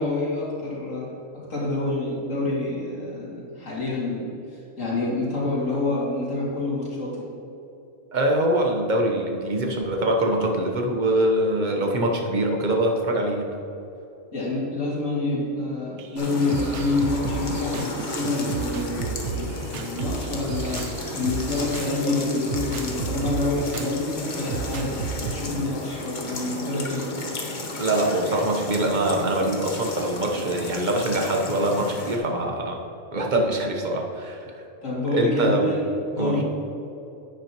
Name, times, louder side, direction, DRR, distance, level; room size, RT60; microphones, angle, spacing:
voice 1, 0.0-4.3 4.8-7.3 14.3-20.9 21.1-27.1 34.8-36.4, left 2 dB, 80° left, -5 dB, 2.6 m, -27 dB
voice 2, 8.1-13.5 27.8-32.8 33.1-34.5 35.1-35.7 36.2-36.4, right 1 dB, 40° right, 2 dB, 1.1 m, -23 dB
sound 1, 16.0-22.0 22.5-23.9 24.5-25.3, right 5 dB, 70° right, 0.9 m, -32 dB
sound 2, 16.2-32.2, left 2 dB, 40° left, 1.0 m, -33 dB
10.0 x 8.7 x 3.0 m, 2.9 s
omnidirectional pair, 1.3 m